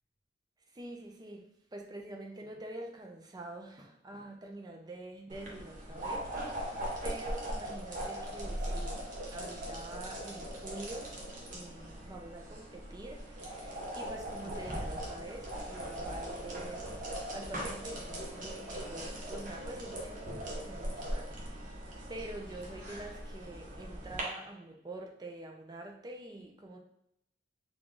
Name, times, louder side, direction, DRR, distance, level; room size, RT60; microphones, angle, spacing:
voice 1, 0.7-6.7 7.0-9.0 9.3-11.2 11.5-16.9 17.3-26.8, right 2 dB, 20° right, 1 dB, 0.5 m, -46 dB
sound 1, 5.3-24.2, right 1 dB, 45° right, 0.8 m, -40 dB
3.4 x 2.4 x 3.8 m, 0.77 s
head